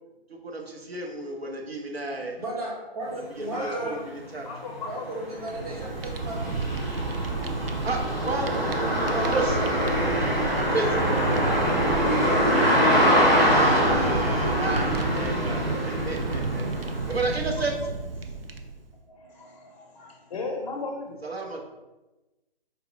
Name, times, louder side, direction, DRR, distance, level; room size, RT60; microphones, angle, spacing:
voice 1, 0.3-2.4 3.4-4.0 4.3-4.5 7.8-9.8 10.6-11.0 13.5-16.6 17.1-17.8 21.2-21.7, right 2 dB, 85° right, 1 dB, 0.9 m, -31 dB
voice 2, 2.4-4.0 4.8-6.9 12.1-14.7, right 1 dB, 35° right, -2 dB, 1.0 m, -36 dB
voice 3, 3.4-4.0 4.4-5.2 9.1-9.3 15.2-15.4 18.2-18.4 19.1-21.2, left 3 dB, 40° left, 0 dB, 0.5 m, -37 dB
sound 1, 3.8-3.9 4.4-17.2, equal, 20° right, 0.6 m, -24 dB
Fire, 5.3-18.9, right 4 dB, 70° right, 0.5 m, -32 dB
4.4 x 2.0 x 3.5 m, 1.1 s
figure-of-eight pair, 145°, 30 cm